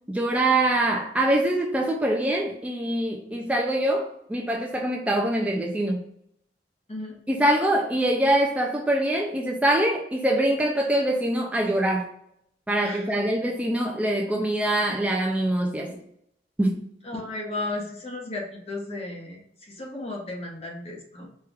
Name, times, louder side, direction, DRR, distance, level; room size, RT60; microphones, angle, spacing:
voice 1, 0.1-6.0 7.3-12.1 12.7-16.0 16.6-16.8, right 1 dB, 10° right, 0 dB, 0.3 m, -24 dB
voice 2, 17.0-19.4 19.7-21.3, left 2 dB, 35° left, -1 dB, 1.0 m, -34 dB
4.5 x 2.3 x 3.4 m, 0.74 s
head